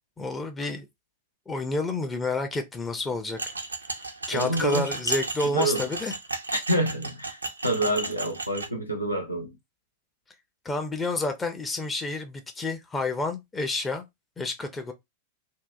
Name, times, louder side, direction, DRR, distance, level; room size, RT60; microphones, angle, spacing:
voice 1, 0.2-0.9 1.5-3.4 4.3-6.1 10.6-14.0 14.4-14.9, left 2 dB, 15° left, 0.5 m, -29 dB
sound 1, 3.4-8.7, right 3 dB, 80° right, 0.3 m, -34 dB
voice 2, 4.3-4.9 5.4-5.9 6.5-7.4 7.6-9.5, right 1 dB, 85° left, 0.7 m, -27 dB
2.7 x 2.1 x 2.3 m
figure-of-eight pair, 90°, 0 cm